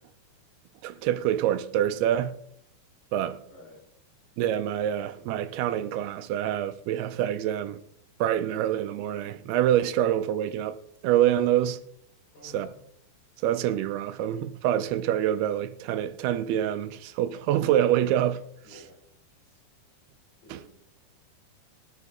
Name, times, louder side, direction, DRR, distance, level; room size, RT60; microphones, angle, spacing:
voice 1, 0.8-2.4 3.1-3.4 4.4-7.8 8.2-10.8 11.0-11.8 12.4-12.7 13.4-18.5 20.5-20.6, right 11 dB, 80° right, 2.6 m, -26 dB
voice 2, 3.5-3.9 12.3-12.8 18.6-19.0 19.3-19.6 20.4-20.7, left 2 dB, 60° left, 6.5 m, -51 dB
20.5 x 8.3 x 3.6 m
omnidirectional pair, 4.6 m